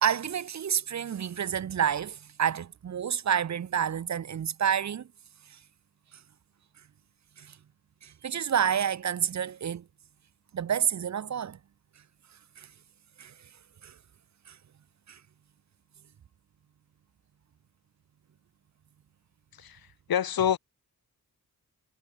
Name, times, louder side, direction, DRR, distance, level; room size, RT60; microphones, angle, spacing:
voice 1, 0.0-5.1 7.4-7.5 8.0-9.8 10.5-11.6 12.6-12.7 13.2-13.3 13.8-13.9 14.5-14.6 15.1-15.2, right 8 dB, 50° right, 0.6 m, -29 dB
voice 2, 19.5-20.6, left 9 dB, 75° left, 0.9 m, -28 dB
wide cardioid pair, 150°, 36 cm